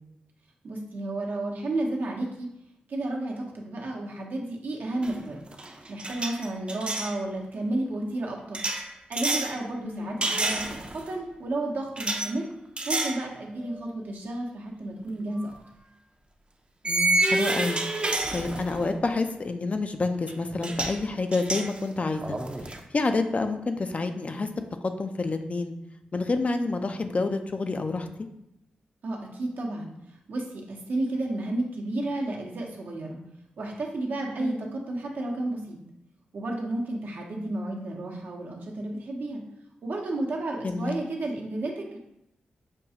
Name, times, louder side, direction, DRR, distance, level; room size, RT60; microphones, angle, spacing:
voice 1, 0.6-2.5 2.9-5.4 5.9-8.6 9.1-12.5 12.9-15.5 29.0-29.9 30.3-33.2 33.6-35.8 36.3-39.4 39.8-42.0, right 2 dB, 65° right, -1 dB, 0.8 m, -32 dB
sound 1, 5.0-5.3 5.5-7.1 8.5-9.6 10.2-11.1 12.0-12.3 12.8-13.2 13.7-13.8 15.4-15.5 16.9-18.9 20.3-20.4 20.6-21.0 21.3-22.8, right 2 dB, 30° right, 0.5 m, -28 dB
voice 2, 9.8-10.2 16.8-22.4 22.9-24.5 24.8-25.7 26.1-28.1 34.4-34.6 40.6-41.0, left 3 dB, 40° left, 7 dB, 0.4 m, -28 dB
5.3 x 2.3 x 2.8 m, 0.84 s
supercardioid pair, 40°, 3 cm